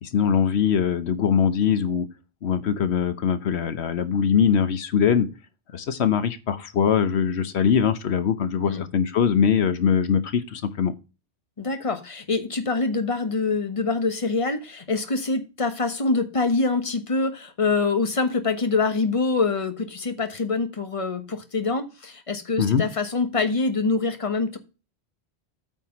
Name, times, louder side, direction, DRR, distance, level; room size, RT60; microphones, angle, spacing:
voice 1, 0.0-2.1 2.4-5.3 5.7-10.9 22.6-22.8, left 7 dB, 80° left, 1.1 m, -22 dB
voice 2, 11.6-24.6, left 3 dB, 30° left, 1.3 m, -25 dB
9.1 x 4.7 x 5.8 m
omnidirectional pair, 1.1 m